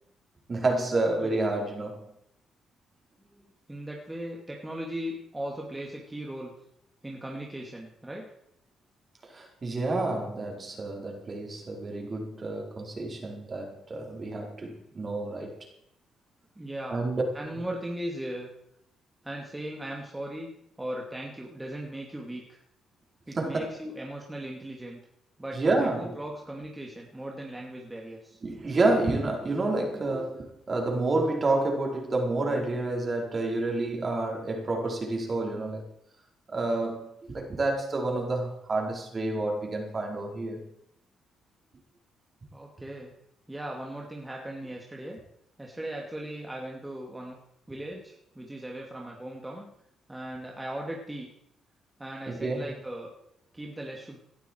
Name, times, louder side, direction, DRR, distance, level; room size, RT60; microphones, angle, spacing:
voice 1, 0.5-2.1 9.3-15.6 16.9-17.2 23.3-23.7 25.5-26.1 28.4-35.8 36.5-40.7 52.3-52.7, right 2 dB, 35° right, 1 dB, 4.7 m, -29 dB
voice 2, 1.1-1.4 3.2-6.5 7.0-8.3 16.6-17.0 17.3-18.5 19.2-20.5 20.8-22.6 23.3-25.0 25.4-28.4 42.5-43.1 43.5-45.2 45.6-47.4 47.7-49.7 50.1-51.3 52.0-53.1 53.5-54.2, right 1 dB, 10° right, -1 dB, 2.7 m, -38 dB
18.5 x 11.5 x 4.8 m, 0.75 s
cardioid pair, 90°, 0 cm